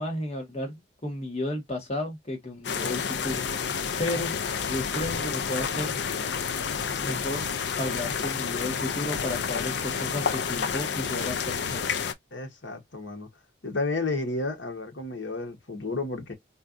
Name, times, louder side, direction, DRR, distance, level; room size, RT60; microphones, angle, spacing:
voice 1, 0.0-3.4 4.0-4.3 4.6-5.9 7.0-7.5 7.8-11.8, left 1 dB, 35° left, 1.2 m, -33 dB
sound 1, 2.6-12.1, left 6 dB, 65° left, 0.4 m, -30 dB
voice 2, 12.3-13.3 13.6-16.3, left 3 dB, 80° left, 1.1 m, -32 dB
4.3 x 2.4 x 2.5 m
head